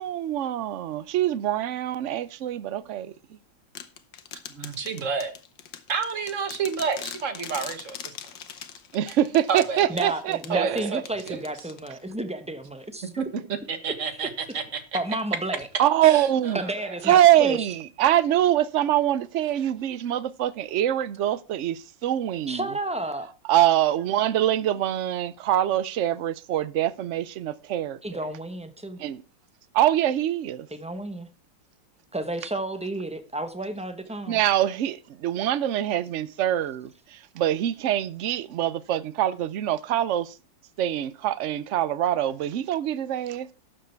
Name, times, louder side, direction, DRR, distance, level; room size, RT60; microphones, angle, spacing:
voice 1, 0.0-3.1 8.9-11.0 15.8-16.6 17.0-22.7 23.5-28.2 29.0-29.2 29.7-30.7 34.3-40.4 40.8-43.5, right 12 dB, 75° right, 0.6 m, -24 dB
sound 1, 3.8-12.2, left 9 dB, 80° left, 1.7 m, -41 dB
voice 2, 4.5-5.3 5.9-8.1 9.5-9.8 10.5-11.0 11.3-11.5 13.2-14.8 16.0-16.9, right 5 dB, 45° right, 1.7 m, -30 dB
voice 3, 9.9-13.1 14.9-15.7 16.5-17.6 22.5-23.3 28.0-29.0 30.7-31.3 32.1-34.4, right 1 dB, 5° right, 0.5 m, -31 dB
12.5 x 7.5 x 4.5 m
omnidirectional pair, 2.0 m